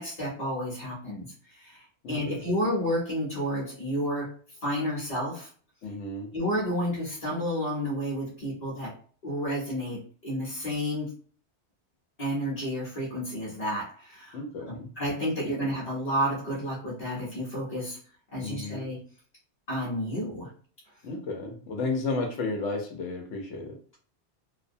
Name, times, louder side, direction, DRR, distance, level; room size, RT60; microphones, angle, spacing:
voice 1, 0.0-4.3 4.6-5.5 6.3-9.0 9.2-11.1 12.2-14.4 14.7-18.0 18.3-19.0 19.7-20.5, equal, 40° left, -7 dB, 0.9 m, -31 dB
voice 2, 2.0-2.4 5.8-6.3 14.3-14.9 18.4-18.8 21.0-23.8, left 3 dB, 90° left, 2 dB, 1.0 m, -33 dB
2.4 x 2.1 x 2.6 m, 0.43 s
omnidirectional pair, 1.2 m